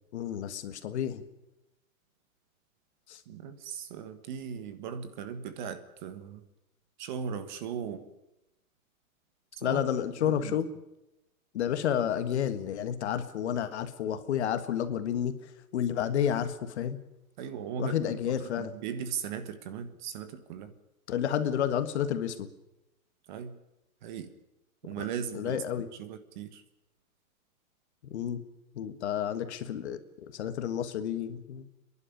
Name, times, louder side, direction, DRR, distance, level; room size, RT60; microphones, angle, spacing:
voice 1, 0.1-1.2 3.1-3.2 9.6-10.7 11.5-15.4 15.7-17.0 17.8-18.7 21.1-22.5 25.0-25.1 25.3-25.9 28.1-28.4 28.8-31.6, left 9 dB, 50° left, 10 dB, 1.6 m, -30 dB
voice 2, 3.3-6.4 7.0-8.1 9.5-9.9 10.2-10.6 17.4-20.7 23.3-23.6 24.0-24.3 24.8-26.6, right 7 dB, 35° right, 11 dB, 1.4 m, -38 dB
29.5 x 11.5 x 8.5 m, 0.93 s
hypercardioid pair, 170°, 42 cm